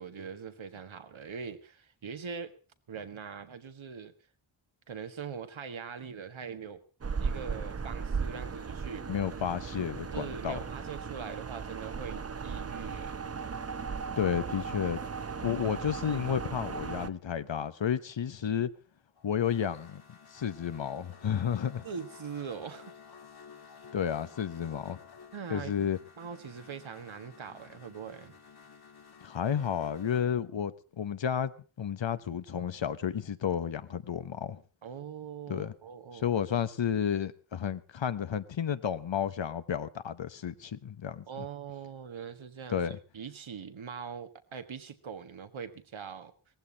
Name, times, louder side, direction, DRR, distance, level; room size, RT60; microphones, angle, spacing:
voice 1, 0.0-2.5 2.9-4.1 4.9-6.8 7.2-9.1 10.1-13.3 21.8-22.9 25.3-25.9 26.2-28.4 34.8-36.4 41.3-46.3, right 6 dB, 75° right, 1.7 m, -42 dB
sound 1, 7.0-17.1, right 5 dB, 30° right, 0.7 m, -37 dB
voice 2, 9.1-10.6 14.2-15.0 15.4-18.7 19.2-21.8 23.9-25.0 25.5-26.0 29.2-31.5 31.8-34.6 35.5-35.7 36.1-41.5 42.7-43.0, left 8 dB, 65° left, 1.1 m, -32 dB
sound 2, 19.2-30.3, left 6 dB, 50° left, 2.5 m, -53 dB
19.0 x 15.0 x 4.0 m
wide cardioid pair, 130°, 48 cm